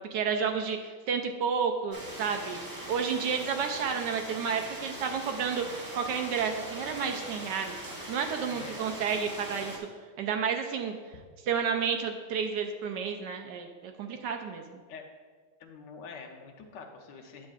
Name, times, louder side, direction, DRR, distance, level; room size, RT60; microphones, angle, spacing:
voice 1, 0.0-2.6 2.9-5.6 5.9-7.8 8.1-9.9 10.2-11.0 11.5-14.8, right 6 dB, 75° right, 4 dB, 1.1 m, -31 dB
sound 1, 1.9-9.8, right 1 dB, 30° right, 0.3 m, -41 dB
voice 2, 8.5-9.0 14.9-15.1 15.6-17.5, left 5 dB, 70° left, 2 dB, 1.3 m, -46 dB
9.6 x 7.3 x 2.4 m, 1.5 s
omnidirectional pair, 2.1 m